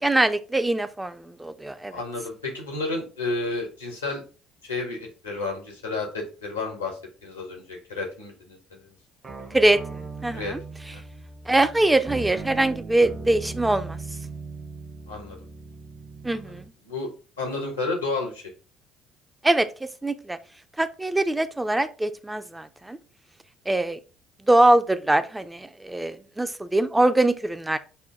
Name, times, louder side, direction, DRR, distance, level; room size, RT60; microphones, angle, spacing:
voice 1, 0.0-1.9 9.5-10.6 11.5-14.0 16.2-16.7 19.4-19.7 20.0-20.4 20.8-23.0 23.7-24.0 24.4-27.8, right 2 dB, 10° right, 11 dB, 0.4 m, -23 dB
voice 2, 1.9-4.2 4.6-8.9 10.3-10.6 10.9-11.0 15.1-15.4 16.3-16.4 16.8-17.1 17.4-18.4, left 3 dB, 90° left, 2 dB, 1.0 m, -31 dB
sound 1, 9.2-16.7, right 3 dB, 35° right, 0.8 m, -38 dB
5.5 x 2.2 x 3.4 m, 0.35 s
figure-of-eight pair, 55°, 0 cm